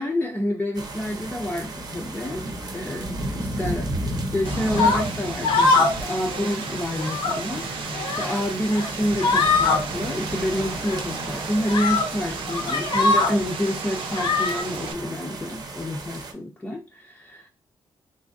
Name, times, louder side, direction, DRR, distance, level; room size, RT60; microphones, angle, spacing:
voice 1, 0.0-2.4 2.7-3.1 3.4-3.9 4.3-17.5, left 1 dB, 15° left, -2 dB, 0.6 m, -28 dB
sound 1, 0.7-16.3, right 1 dB, 50° right, 0.8 m, -34 dB
Vehicle, 4.4-14.9, right 4 dB, 85° right, 0.7 m, -34 dB
sound 2, 4.7-5.0 5.4-6.0 6.3-6.5 6.9-7.4 7.9-8.4 8.7-8.9 9.2-9.8 10.9-11.0 11.7-12.1 12.5-13.4 14.1-14.6, left 3 dB, 90° left, 1.0 m, -22 dB
3.5 x 2.9 x 2.6 m, 0.30 s
wide cardioid pair, 130°, 9 cm